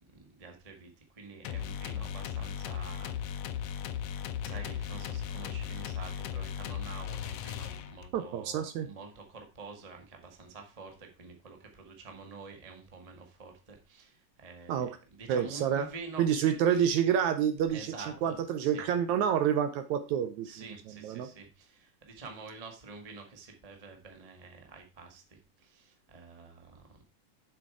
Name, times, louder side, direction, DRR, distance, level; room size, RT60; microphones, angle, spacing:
voice 1, 0.1-16.5 17.7-18.8 20.4-27.0, right 4 dB, 25° right, 3 dB, 0.7 m, -48 dB
sound 1, 1.4-8.2, left 9 dB, 85° left, 1.4 m, -37 dB
voice 2, 8.1-8.9 14.7-15.0 15.3-15.8 16.2-17.9 18.2-20.5 21.0-21.3, right 9 dB, 75° right, 10 dB, 1.9 m, -28 dB
7.5 x 6.7 x 4.7 m, 0.31 s
omnidirectional pair, 3.8 m